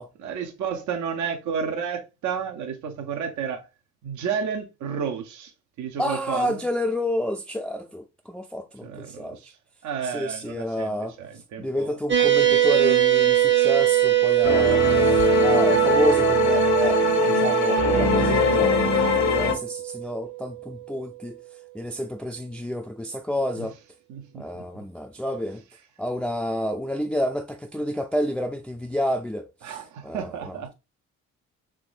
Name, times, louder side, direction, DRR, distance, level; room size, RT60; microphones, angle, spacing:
voice 1, 0.2-3.6 4.0-5.5 5.8-6.6 8.8-9.6 9.8-11.9 23.6-23.7 24.1-24.6 29.6-30.7, right 7 dB, 70° right, 0.7 m, -31 dB
voice 2, 6.0-9.4 10.0-11.2 11.6-21.4 21.7-23.7 24.3-25.6 26.0-30.7, equal, 5° left, 0.4 m, -29 dB
sound 1, 12.1-20.8, right 14 dB, 40° right, 0.7 m, -22 dB
sound 2, 14.4-19.5, left 4 dB, 65° left, 1.0 m, -22 dB
3.5 x 3.0 x 2.4 m
cardioid pair, 90°, 30 cm